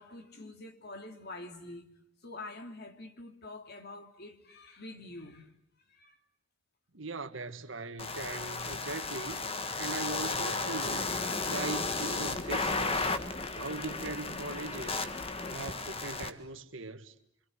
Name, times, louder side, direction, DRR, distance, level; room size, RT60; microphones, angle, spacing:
voice 1, 0.0-1.9 2.2-5.5 5.9-6.2, left 2 dB, 55° left, 3.0 m, -46 dB
voice 2, 6.9-9.4 9.8-11.2 11.5-13.1 13.5-15.1 15.5-17.1, right 3 dB, 90° right, 1.7 m, -40 dB
sound 1, 8.0-16.3, left 3 dB, 30° left, 1.6 m, -34 dB
26.5 x 25.5 x 8.0 m
head